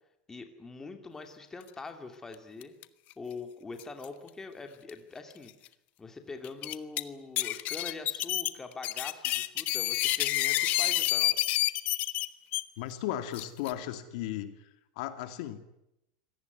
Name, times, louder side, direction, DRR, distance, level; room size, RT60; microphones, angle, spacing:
voice 1, 0.3-2.7 3.2-5.5 6.0-11.4, left 3 dB, 10° left, 6 dB, 2.7 m, -43 dB
sound 1, 2.6-2.8 3.1-3.2 3.8-4.0 4.9-5.0 5.5-5.6 6.4-7.0 7.4-12.6 13.3-13.7, left 16 dB, 40° left, 1.2 m, -29 dB
voice 2, 12.8-14.7 15.0-15.6, left 12 dB, 65° left, 9 dB, 2.6 m, -36 dB
25.5 x 18.0 x 9.5 m, 0.84 s
supercardioid pair, 155°, 4 cm